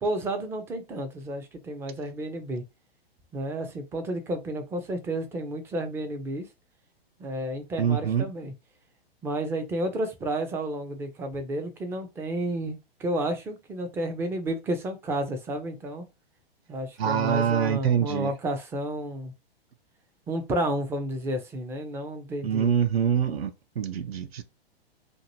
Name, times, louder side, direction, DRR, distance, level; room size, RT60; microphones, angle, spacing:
voice 1, 0.0-2.6 3.3-6.5 7.2-8.5 9.2-16.0 16.7-19.3 20.3-22.8, right 1 dB, 10° right, 0.3 m, -31 dB
voice 2, 7.8-8.3 17.0-18.3 22.4-23.5 23.8-24.4, right 8 dB, 75° right, 0.6 m, -25 dB
2.6 x 2.5 x 2.9 m
hypercardioid pair, 120°, 31 cm